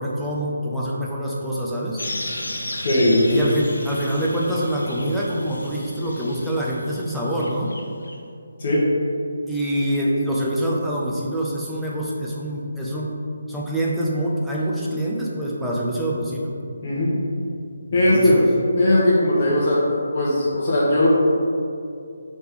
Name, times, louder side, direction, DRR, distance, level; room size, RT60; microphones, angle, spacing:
voice 1, 0.0-2.0 3.3-7.7 9.5-13.1 13.5-16.6 17.9-18.5, right 1 dB, ahead, -7 dB, 0.5 m, -25 dB
sound 1, 2.0-8.1, left 1 dB, 75° left, 0.5 m, -34 dB
voice 2, 2.8-3.4 8.6-8.8 16.8-17.1 17.9-18.4 18.8-21.1, left 1 dB, 40° left, -6 dB, 1.0 m, -18 dB
3.4 x 3.2 x 4.6 m, 2.4 s
figure-of-eight pair, 150°, 0 cm